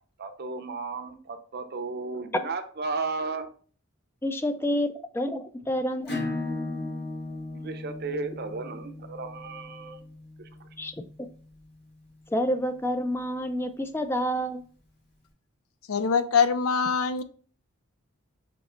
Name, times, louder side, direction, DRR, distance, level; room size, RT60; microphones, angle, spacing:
voice 1, 0.2-3.5 7.5-10.0 10.6-10.7, right 4 dB, 50° right, 7 dB, 0.6 m, -34 dB
voice 2, 4.2-6.1 10.8-11.0 12.3-14.7, equal, 10° left, 8 dB, 0.3 m, -28 dB
Acoustic guitar / Strum, 6.1-11.3, left 2 dB, 50° left, 2.1 m, -36 dB
voice 3, 15.9-17.2, left 6 dB, 85° left, 11 dB, 0.5 m, -23 dB
5.0 x 3.0 x 3.0 m, 0.43 s
head